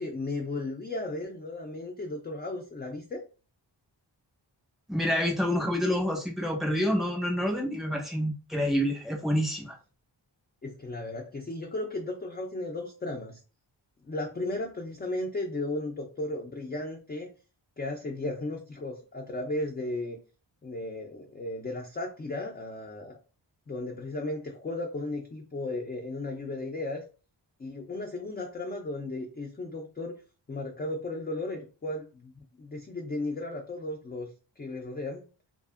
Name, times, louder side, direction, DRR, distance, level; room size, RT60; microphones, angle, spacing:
voice 1, 0.0-3.2 10.6-13.4 14.0-17.3 17.8-20.2 20.6-23.2 23.7-27.0 27.6-30.2 30.5-35.2, left 2 dB, 25° left, 1 dB, 0.3 m, -35 dB
voice 2, 4.9-9.8, equal, ahead, 0 dB, 0.8 m, -28 dB
2.5 x 2.5 x 2.4 m, 0.33 s
wide cardioid pair, 115°, 45 cm